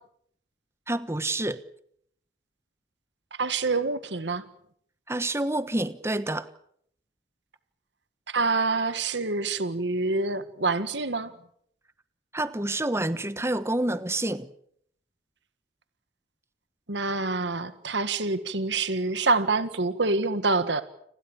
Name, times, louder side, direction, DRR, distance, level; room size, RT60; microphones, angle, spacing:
voice 1, 0.9-1.6 5.1-6.5 12.3-14.5, right 1 dB, 15° right, 1.2 m, -28 dB
voice 2, 3.4-4.4 8.3-11.3 16.9-20.8, right 3 dB, 80° right, 1.7 m, -26 dB
30.0 x 21.0 x 7.2 m
head